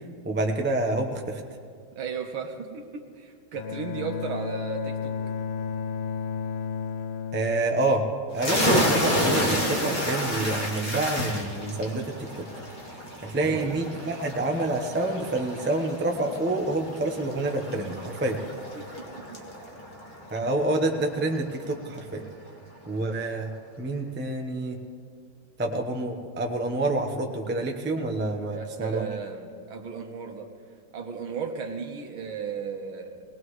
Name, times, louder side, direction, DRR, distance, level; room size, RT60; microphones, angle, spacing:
voice 1, 0.2-1.4 7.3-8.1 8.3-12.5 13.2-18.4 20.3-22.2 22.9-23.5 23.8-24.8 25.6-29.1, right 2 dB, 10° right, 3 dB, 0.6 m, -28 dB
voice 2, 2.0-5.1 13.5-13.8 18.8-19.4 28.5-30.5 30.9-33.2, right 5 dB, 80° right, 4 dB, 2.1 m, -35 dB
Bowed string instrument, 3.5-8.6, left 6 dB, 90° left, 1.5 m, -33 dB
sound 1, 8.4-21.7, equal, 25° left, 1.7 m, -30 dB
19.5 x 19.5 x 3.2 m, 2.2 s
omnidirectional pair, 2.2 m